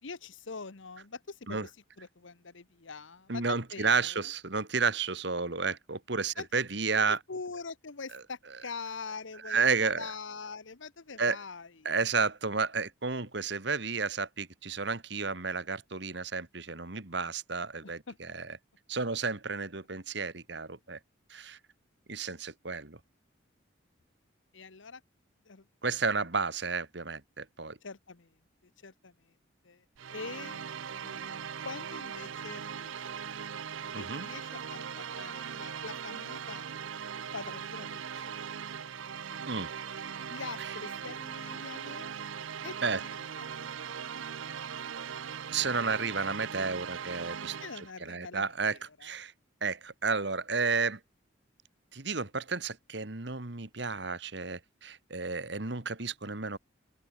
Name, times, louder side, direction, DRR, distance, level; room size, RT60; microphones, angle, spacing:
voice 1, 0.0-1.7 2.0-4.3 6.4-6.5 7.1-9.7 10.0-12.0 17.8-18.2 24.5-25.0 25.4-25.7 27.8-28.4 28.8-29.3 29.6-29.8 30.1-30.6 31.0-33.3 34.0-36.7 37.3-38.4 38.7-38.9 40.3-42.1 42.6-45.2 47.6-49.1, left 4 dB, 75° left, 1.1 m, -44 dB
voice 2, 3.3-7.2 9.4-10.1 11.2-11.4 11.8-18.6 18.9-21.0 21.3-21.6 22.1-23.0 25.8-27.8 33.9-34.2 39.5-39.7 40.6-40.7 42.8-43.0 45.5-49.3 49.6-51.0 51.9-56.6, right 4 dB, 60° right, 1.6 m, -32 dB
sound 1, 30.0-47.9, right 7 dB, 80° right, 0.6 m, -40 dB
open air
head